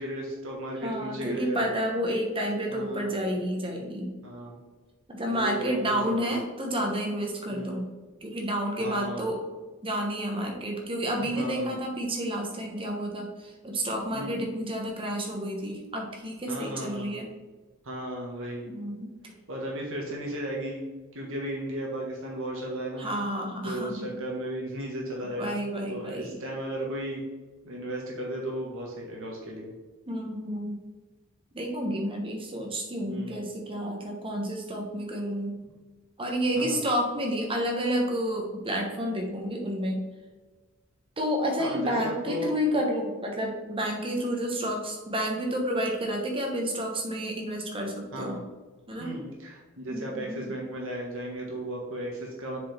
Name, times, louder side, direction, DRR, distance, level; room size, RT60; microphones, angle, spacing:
voice 1, 0.0-1.7 2.7-3.1 4.2-4.6 5.3-6.4 7.5-7.8 8.8-9.3 11.2-11.7 14.1-14.4 16.5-17.2 17.8-18.7 19.5-20.8 21.1-23.1 23.6-27.2 27.6-29.7 33.1-33.5 36.6-36.8 41.6-42.5 48.1-48.4 49.0-52.6, right 1 dB, 65° right, -2 dB, 1.5 m, -35 dB
voice 2, 0.8-4.1 5.1-7.9 8.2-9.4 9.8-17.3 18.7-19.3 23.0-24.1 25.2-26.4 30.1-30.8 31.5-35.6 36.2-40.0 41.2-48.4 48.9-49.1 49.9-50.5, equal, 25° right, 1 dB, 1.2 m, -30 dB
7.3 x 4.9 x 3.5 m, 1.3 s
head